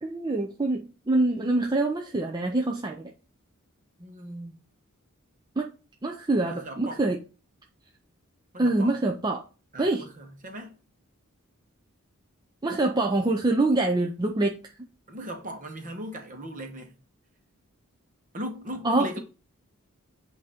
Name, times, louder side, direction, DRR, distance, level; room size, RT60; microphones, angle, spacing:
voice 1, 0.0-3.1 5.6-5.7 6.0-7.2 8.6-9.4 9.8-10.0 12.6-14.6 18.8-19.2, right 2 dB, 20° right, 0.5 m, -25 dB
voice 2, 4.0-4.7 6.5-7.0 8.5-9.0 9.7-10.8 15.1-16.9 18.3-19.2, equal, 40° right, 1.2 m, -38 dB
8.1 x 2.7 x 4.9 m
head